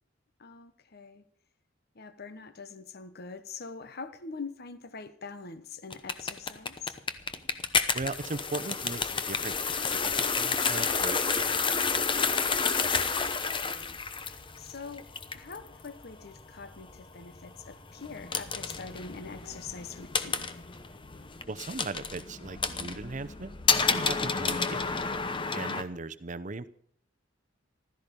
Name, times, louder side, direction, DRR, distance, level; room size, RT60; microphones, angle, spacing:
voice 1, 0.4-1.2 1.9-7.0 12.4-14.0 14.6-20.4, left 4 dB, 55° left, 11 dB, 1.0 m, -44 dB
sound 1, 5.9-25.8, left 5 dB, 25° left, 0.9 m, -30 dB
voice 2, 7.9-11.9 21.5-25.0 25.5-26.7, right 3 dB, 40° right, 14 dB, 0.7 m, -39 dB
15.5 x 13.5 x 5.3 m, 0.63 s
head